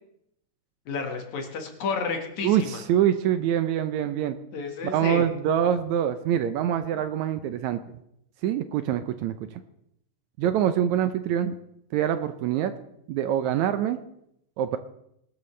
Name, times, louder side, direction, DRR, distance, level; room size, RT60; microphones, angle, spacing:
voice 1, 0.9-2.7 4.5-5.3, left 4 dB, 65° left, 3 dB, 2.9 m, -31 dB
voice 2, 2.4-4.4 4.8-7.8 8.4-9.6 10.4-11.6 11.9-12.7 13.1-14.0 14.6-14.8, right 10 dB, 75° right, 10 dB, 1.8 m, -25 dB
21.5 x 12.5 x 3.3 m, 0.78 s
omnidirectional pair, 3.7 m